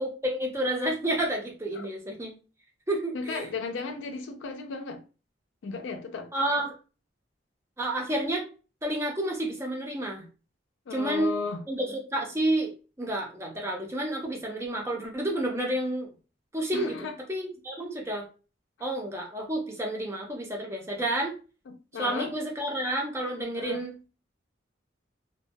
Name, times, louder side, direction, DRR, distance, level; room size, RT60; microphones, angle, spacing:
voice 1, 0.0-2.3 2.9-3.5 6.3-6.7 7.8-8.5 8.8-10.3 10.9-11.3 11.7-16.1 16.5-18.3 18.8-21.4 22.0-23.9, right 1 dB, 15° right, 0.5 m, -30 dB
voice 2, 3.1-5.0 5.6-6.3 10.9-11.6 16.7-17.1 21.7-22.3 23.6-23.8, left 4 dB, 80° left, 0.4 m, -35 dB
2.2 x 2.1 x 2.6 m
head